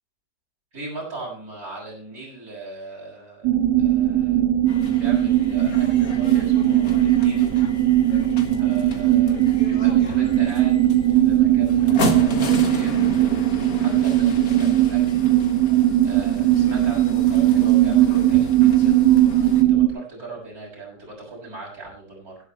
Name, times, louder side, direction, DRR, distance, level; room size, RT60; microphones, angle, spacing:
voice 1, 0.7-3.5 3.8-4.4 4.9-7.5 8.6-10.8 11.1-15.2 15.5-15.6 16.0-19.0 19.4-22.4, right 3 dB, 55° right, -3 dB, 7.1 m, -39 dB
sound 1, 3.4-19.9, right 13 dB, 80° right, 2.1 m, -19 dB
sound 2, 4.7-19.6, left 3 dB, 55° left, 2.1 m, -35 dB
17.5 x 11.5 x 3.1 m, 0.40 s
omnidirectional pair, 1.8 m